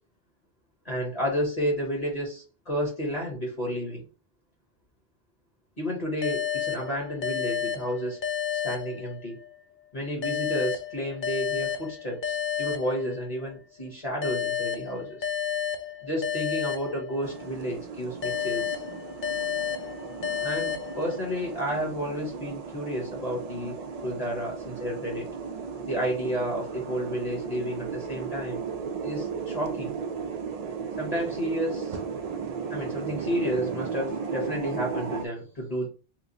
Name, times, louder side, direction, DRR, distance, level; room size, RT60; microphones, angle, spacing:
voice 1, 0.8-4.1 5.8-8.2 8.5-9.4 9.9-15.3 16.0-18.8 20.4-25.3 25.9-28.6 29.0-30.0 31.0-32.0 32.7-35.9, equal, 40° left, -2 dB, 1.2 m, -31 dB
sound 1, 6.2-9.6 10.2-13.5 14.2-17.6 18.2-21.5, left 9 dB, 60° left, 0.6 m, -31 dB
sound 2, 17.2-35.3, right 5 dB, 55° right, 0.4 m, -35 dB
3.0 x 2.0 x 3.9 m, 0.36 s
omnidirectional pair, 1.0 m